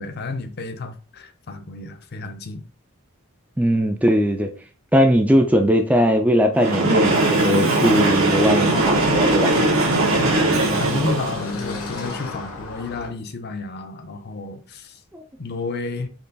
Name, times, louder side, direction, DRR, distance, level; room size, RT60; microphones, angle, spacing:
voice 1, 0.0-2.6 10.2-14.9 15.4-16.1, left 3 dB, 45° left, 0.6 m, -31 dB
voice 2, 3.6-4.5 4.9-9.5 15.1-15.2, equal, 5° right, 0.3 m, -19 dB
Train, 6.5-11.6, right 2 dB, 65° right, 1.3 m, -19 dB
Car passing by / Traffic noise roadway noise, 8.0-13.1, left 3 dB, 80° left, 1.1 m, -34 dB
4.5 x 2.9 x 4.0 m
head